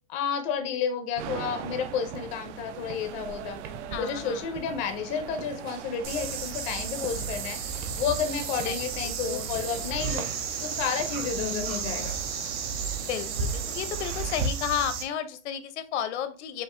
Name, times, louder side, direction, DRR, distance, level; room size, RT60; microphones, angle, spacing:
voice 1, 0.1-3.6 4.0-10.3 10.6-12.1, left 6 dB, 20° left, 6 dB, 0.4 m, -31 dB
sound 1, 1.2-14.5, right 9 dB, 80° right, 0.6 m, -42 dB
sound 2, 2.1-2.4 2.8-3.2 3.6-4.1 4.6-5.0 5.4-5.8 6.2-7.4 7.8-9.0 9.4-9.7 10.2-11.3, right 5 dB, 25° right, 0.6 m, -44 dB
voice 2, 3.9-4.6 8.6-8.8 9.0-9.8 11.3-12.1 13.0-16.6, left 10 dB, 70° left, 11 dB, 0.7 m, -33 dB
sound 3, 6.0-15.0, right 5 dB, 60° right, 1.2 m, -33 dB
5.9 x 2.4 x 3.1 m, 0.36 s
supercardioid pair, 160°, 35 cm